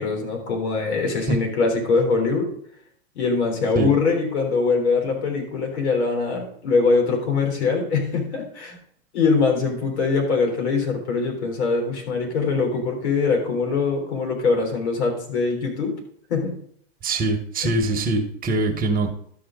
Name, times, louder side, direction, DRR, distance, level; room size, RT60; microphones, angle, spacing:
voice 1, 0.0-2.5 3.1-8.7 9.1-15.9 16.3-16.5, left 4 dB, 70° left, 2 dB, 3.5 m, -22 dB
voice 2, 17.0-19.1, right 2 dB, 25° right, 4 dB, 1.2 m, -23 dB
12.5 x 5.8 x 3.7 m, 0.64 s
hypercardioid pair, 120°, 34 cm